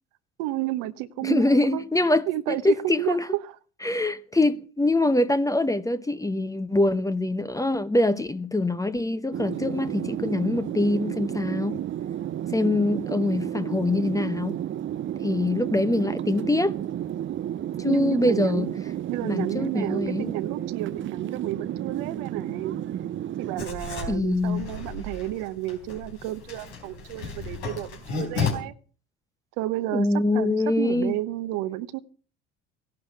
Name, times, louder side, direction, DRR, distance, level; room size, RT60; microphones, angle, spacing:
voice 1, 0.4-3.5 17.9-18.7 19.1-22.8 23.4-28.7 29.6-30.1 30.3-32.0, right 15 dB, 70° right, 1.1 m, -31 dB
voice 2, 1.2-3.2 3.8-11.8 12.5-14.6 15.2-16.8 17.8-18.7 19.2-20.3 24.1-24.6 29.9-31.1, left 2 dB, 10° left, 0.9 m, -24 dB
sound 1, 9.3-23.7, right 11 dB, 35° right, 0.6 m, -32 dB
Writing, 23.6-28.5, left 5 dB, 85° left, 4.1 m, -33 dB
16.0 x 11.5 x 5.9 m
hypercardioid pair, 65°, 34 cm